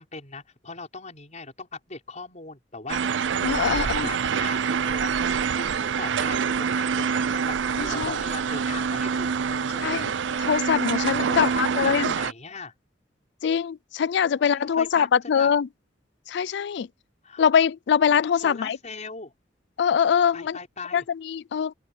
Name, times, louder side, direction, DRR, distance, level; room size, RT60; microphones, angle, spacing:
voice 1, 0.0-3.3 3.7-9.8 11.2-12.7 14.3-15.5 17.2-17.4 18.3-19.3 20.3-21.1, left 4 dB, 40° left, 5.3 m, -40 dB
sound 1, 2.9-12.3, right 6 dB, 70° right, 0.4 m, -26 dB
voice 2, 3.4-4.1 7.8-8.2 9.8-10.1 10.4-12.1 13.4-15.7 16.3-16.9 17.4-18.8 19.8-20.6 20.9-21.7, left 7 dB, 65° left, 0.4 m, -23 dB
open air
head